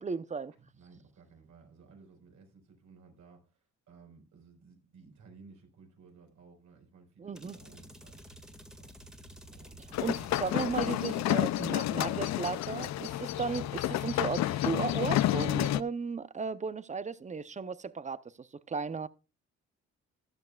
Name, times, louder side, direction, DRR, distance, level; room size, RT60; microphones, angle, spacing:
voice 1, 0.0-0.5 7.2-7.6 10.0-19.1, right 5 dB, 25° right, 0.7 m, -35 dB
voice 2, 0.6-8.3 8.8-8.9 9.5-10.3 13.3-13.5, right 5 dB, 70° right, 4.7 m, -57 dB
sound 1, 7.3-11.8, equal, ahead, 1.9 m, -51 dB
sound 2, 9.9-15.8, left 14 dB, 65° left, 0.5 m, -30 dB
14.5 x 11.0 x 2.4 m
cardioid pair, 90°, 30 cm